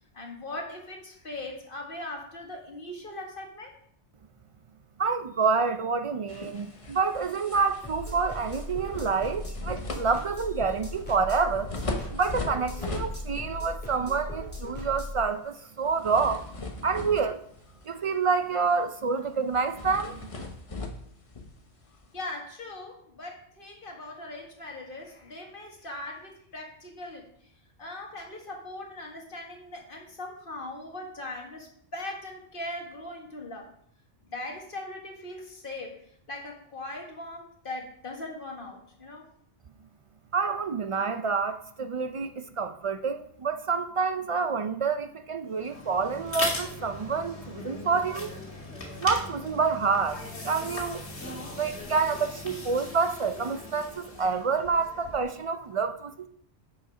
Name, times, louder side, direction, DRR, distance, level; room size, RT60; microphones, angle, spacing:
voice 1, 0.1-3.7 22.1-27.3 27.8-33.7 34.3-36.0 36.3-39.3, left 2 dB, 50° left, 1.8 m, -40 dB
voice 2, 5.0-11.7 12.1-16.4 16.8-17.4 17.9-20.2 40.3-48.3 49.0-50.2 50.4-51.0 51.5-56.3, right 5 dB, 60° right, 0.3 m, -28 dB
sound 1, 6.3-13.6 14.0-14.3 15.8-18.1 18.4-18.6 18.9-19.0 19.5-22.2, left 2 dB, 35° left, 0.9 m, -39 dB
sound 2, 7.8-15.2, left 1 dB, 10° left, 2.3 m, -38 dB
sound 3, 45.5-55.4, left 2 dB, 80° left, 2.0 m, -38 dB
7.0 x 6.4 x 5.0 m
omnidirectional pair, 1.1 m